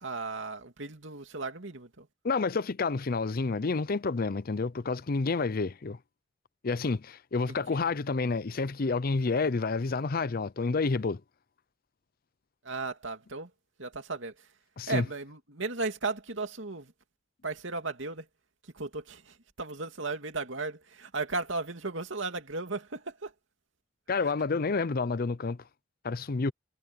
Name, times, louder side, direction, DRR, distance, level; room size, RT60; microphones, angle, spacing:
voice 1, 0.0-2.1 7.7-7.8 12.6-13.5 13.8-14.3 14.9-16.9 17.4-18.2 18.8-23.3, right 3 dB, 75° right, 2.6 m, -35 dB
voice 2, 2.2-6.0 6.6-11.2 14.8-15.1 24.1-25.6 26.0-26.5, left 4 dB, 50° left, 0.6 m, -29 dB
head